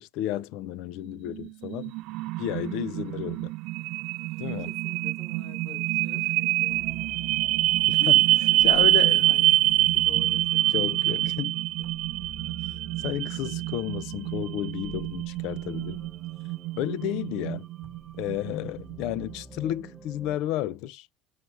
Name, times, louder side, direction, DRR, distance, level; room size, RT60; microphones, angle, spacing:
voice 1, 0.0-1.9 2.4-3.5 4.4-4.7 7.9-8.2 8.6-9.2 10.7-11.6 13.0-16.1 16.8-17.7 18.2-21.1, left 13 dB, 55° left, 0.5 m, -32 dB
sound 1, 1.3-19.3, right 17 dB, 55° right, 0.3 m, -26 dB
voice 2, 4.6-6.9 7.5-12.4 18.6-18.8, left 4 dB, 40° left, 2.7 m, -47 dB
sound 2, 6.7-20.4, right 3 dB, 5° right, 0.9 m, -48 dB
4.8 x 4.7 x 5.3 m
cardioid pair, 160°, 0 cm